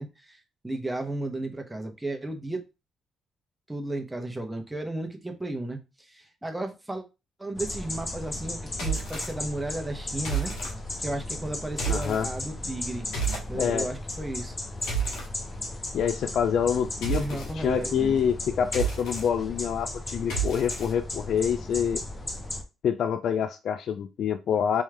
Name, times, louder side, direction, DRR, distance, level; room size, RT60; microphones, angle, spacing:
voice 1, 0.0-2.6 3.7-5.8 6.1-7.0 7.4-10.5 11.0-13.1 13.5-14.6 17.1-18.2, right 2 dB, 10° right, 4 dB, 0.9 m, -34 dB
sound 1, 7.5-22.6, left 2 dB, 25° left, 0.8 m, -36 dB
sound 2, 8.7-9.3 10.2-10.7 11.7-12.2 13.1-13.5 14.5-15.3 17.0-17.5 18.6-19.3 20.3-20.9, right 6 dB, 85° left, 1.7 m, -30 dB
voice 2, 11.9-12.3 13.5-13.9 15.9-22.0 22.8-24.8, left 8 dB, 65° left, 9 dB, 0.3 m, -26 dB
3.6 x 3.1 x 3.3 m, 0.27 s
cardioid pair, 90°, 0 cm